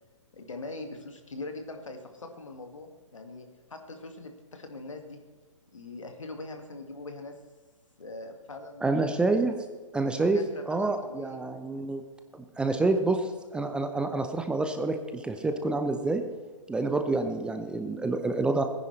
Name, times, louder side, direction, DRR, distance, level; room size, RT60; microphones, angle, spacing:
voice 1, 0.3-5.2 5.7-7.4 8.0-9.0 10.3-11.5, left 2 dB, 75° left, 5 dB, 2.0 m, -42 dB
voice 2, 8.8-9.6 9.9-10.4 10.7-12.0 12.6-16.2 16.7-18.6, right 3 dB, 5° right, 6 dB, 0.7 m, -27 dB
18.5 x 10.0 x 3.3 m, 1.4 s
figure-of-eight pair, 125°, 16 cm